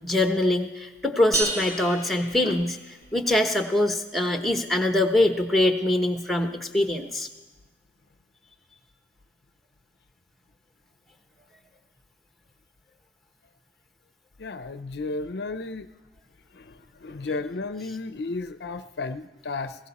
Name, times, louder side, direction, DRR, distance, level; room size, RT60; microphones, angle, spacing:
voice 1, 0.0-2.8 3.1-7.3, left 1 dB, ahead, 4 dB, 1.0 m, -23 dB
sound 1, 1.3-3.2, right 2 dB, 40° right, 2.8 m, -31 dB
voice 2, 14.4-15.9 16.6-16.7 17.0-19.8, left 3 dB, 60° left, 11 dB, 0.6 m, -33 dB
19.5 x 16.5 x 4.2 m, 1.1 s
head